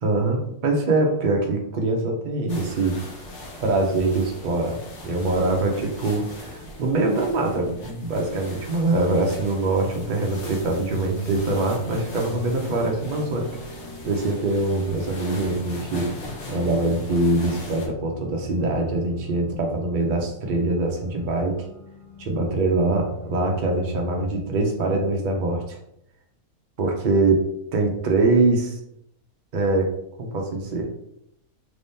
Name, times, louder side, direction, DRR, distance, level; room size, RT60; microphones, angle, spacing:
voice 1, 0.0-3.0 3.6-13.5 14.0-16.1 16.5-21.7 22.2-25.8 26.8-28.8 29.5-30.9, right 2 dB, 75° right, 1 dB, 0.4 m, -23 dB
sound 1, 2.5-17.9, left 1 dB, 50° left, 1.0 m, -40 dB
sound 2, 10.5-24.3, equal, 70° left, 1.4 m, -39 dB
3.5 x 2.7 x 3.5 m, 0.76 s
omnidirectional pair, 1.8 m